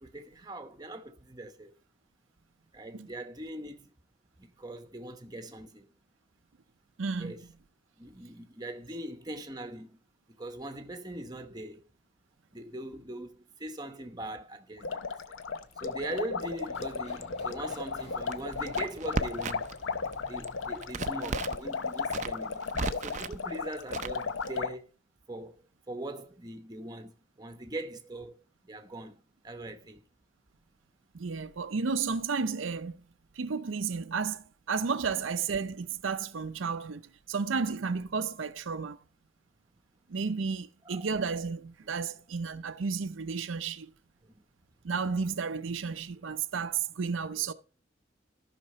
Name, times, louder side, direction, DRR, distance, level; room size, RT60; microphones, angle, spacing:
voice 1, 0.0-1.7 2.7-3.9 4.4-5.9 7.2-7.4 8.0-10.0 10.3-11.8 12.5-15.3 15.8-19.7 20.3-22.7 23.0-24.9 25.3-30.0 40.8-41.1 44.2-44.3 47.3-47.5, right 1 dB, 20° right, 0.9 m, -41 dB
voice 2, 7.0-7.4 31.1-33.0 33.4-37.0 37.3-39.0 40.1-43.9 44.8-47.5, right 5 dB, 80° right, 0.6 m, -32 dB
sound 1, 14.8-24.7, left 5 dB, 80° left, 0.7 m, -35 dB
Run, 15.3-20.9, equal, 35° left, 3.7 m, -52 dB
Crackle, 18.3-19.8 20.1-21.6 22.0-23.4 23.9-24.5, right 4 dB, 40° right, 0.5 m, -35 dB
13.5 x 5.9 x 4.3 m
head